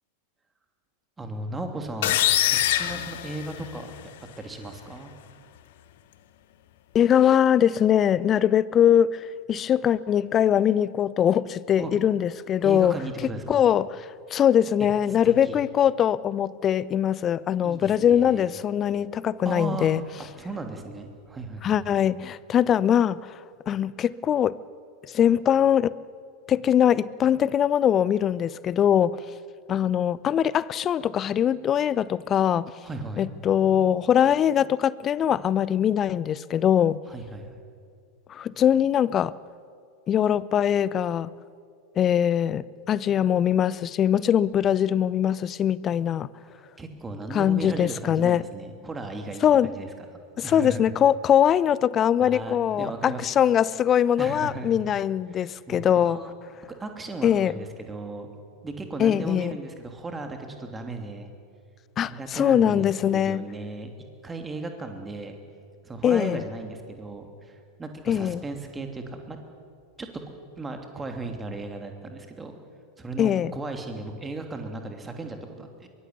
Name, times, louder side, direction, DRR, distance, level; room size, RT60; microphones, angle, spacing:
voice 1, 1.2-2.2 2.5-4.1 4.4-5.1 11.8-11.9 12.6-13.6 15.2-15.6 17.6-18.5 19.4-19.9 20.2-21.8 32.8-33.3 37.1-37.6 46.8-49.9 50.4-50.9 52.2-53.4 54.2-54.8 55.3-56.3 56.7-58.3 58.6-61.3 62.0-62.9 63.1-63.9 64.2-65.4 65.8-69.4 70.0-70.2 70.6-72.6 73.0-75.9, right 2 dB, 15° right, 3.0 m, -36 dB
sound 1, 2.0-4.0, left 13 dB, 55° left, 1.2 m, -24 dB
voice 2, 6.9-12.9 13.5-13.9 14.3-20.0 21.6-24.6 25.1-26.0 26.5-29.2 29.7-32.7 33.2-37.0 38.3-39.4 40.1-41.3 42.0-46.3 47.3-48.5 49.4-49.7 50.4-56.2 57.2-57.5 59.0-59.5 62.0-63.4 66.0-66.4 68.1-68.4 73.2-73.5, left 9 dB, 25° left, 0.6 m, -22 dB
23.0 x 21.0 x 8.4 m
figure-of-eight pair, 90°, 0 cm